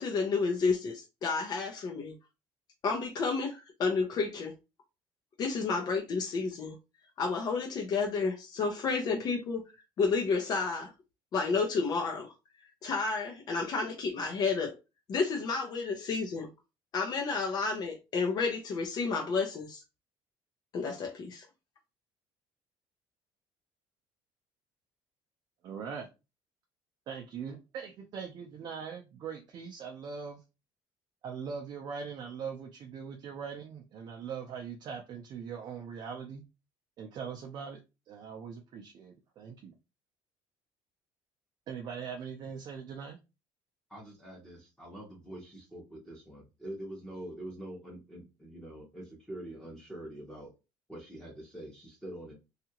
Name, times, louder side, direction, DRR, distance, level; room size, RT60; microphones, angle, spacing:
voice 1, 0.0-2.1 2.8-4.5 5.4-6.8 7.2-9.6 10.0-10.9 11.3-12.3 12.8-14.7 15.1-16.5 16.9-19.8 20.7-21.5, left 4 dB, 45° left, 0.5 m, -31 dB
voice 2, 25.6-26.1 27.1-30.4 31.2-36.4 37.0-37.8 38.1-39.7 41.7-43.2, right 6 dB, 50° right, 0.5 m, -41 dB
voice 3, 43.9-50.5 50.9-52.3, right 1 dB, 5° left, 0.8 m, -45 dB
2.8 x 2.4 x 2.8 m
cardioid pair, 135°, 10 cm